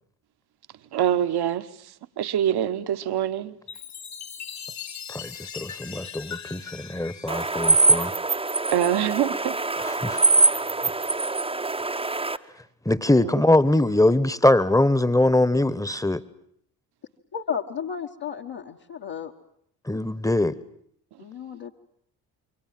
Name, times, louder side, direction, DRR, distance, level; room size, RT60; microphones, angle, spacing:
voice 1, 0.9-1.7 2.2-3.6 8.7-9.6 13.2-13.4, right 10 dB, 50° right, 1.3 m, -24 dB
Chime, 3.7-8.4, left 8 dB, 35° left, 1.1 m, -40 dB
voice 2, 5.1-8.1 9.8-10.5 12.8-16.2 19.9-20.6, left 1 dB, 5° left, 1.3 m, -22 dB
sound 1, 7.3-12.4, right 3 dB, 10° right, 1.0 m, -23 dB
voice 3, 17.3-19.3 21.2-21.7, left 7 dB, 50° left, 1.6 m, -33 dB
27.5 x 23.5 x 7.7 m
figure-of-eight pair, 45°, 49 cm